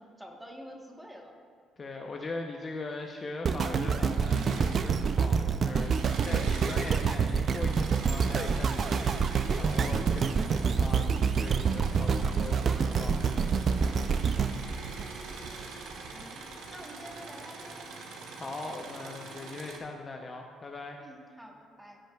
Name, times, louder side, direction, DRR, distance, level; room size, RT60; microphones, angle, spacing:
voice 1, 0.0-1.4 16.1-17.8 21.0-22.0, equal, 5° right, 1 dB, 1.1 m, -48 dB
voice 2, 1.8-9.2 9.5-13.6 18.4-21.0, left 3 dB, 30° left, 2 dB, 0.6 m, -40 dB
sound 1, 3.5-15.7 16.2-16.3, right 6 dB, 40° right, 0.3 m, -27 dB
Engine / Mechanisms, 4.0-5.4 5.6-19.8, right 3 dB, 75° right, 1.0 m, -44 dB
14.5 x 6.2 x 2.3 m, 2.2 s
cardioid pair, 115°, 0 cm